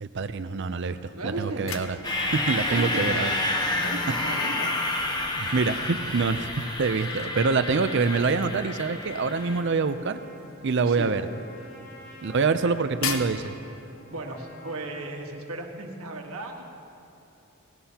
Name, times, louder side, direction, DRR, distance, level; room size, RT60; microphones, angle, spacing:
voice 1, 0.0-1.0 1.2-2.0 2.3-3.3 5.4-6.5 6.8-10.2 10.6-11.2 12.2-13.5, right 4 dB, 55° right, 11 dB, 0.5 m, -25 dB
voice 2, 1.1-1.7 2.7-3.2 3.8-4.8 10.8-11.2 12.6-12.7 14.1-16.7, right 2 dB, 80° right, 2 dB, 1.5 m, -35 dB
sound 1, 1.3-14.3, left 6 dB, 70° left, 0.9 m, -42 dB
sound 2, 2.0-9.6, left 2 dB, 20° left, 0.9 m, -29 dB
Trumpet, 7.1-15.2, left 1 dB, 35° left, 2.1 m, -50 dB
18.0 x 17.0 x 2.9 m, 2.8 s
head